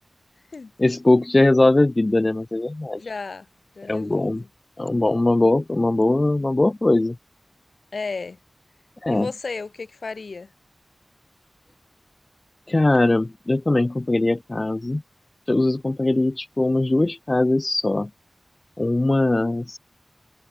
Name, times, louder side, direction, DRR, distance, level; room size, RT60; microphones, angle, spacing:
voice 1, 0.8-3.0 3.9-4.4 4.8-7.2 9.0-9.3 12.7-15.0 15.5-18.1 18.8-19.8, left 2 dB, 35° left, 0.6 m, -20 dB
voice 2, 2.9-3.5 3.8-4.5 7.9-8.4 9.1-10.5, left 4 dB, 80° left, 3.9 m, -33 dB
wide cardioid pair, 70°, 0 cm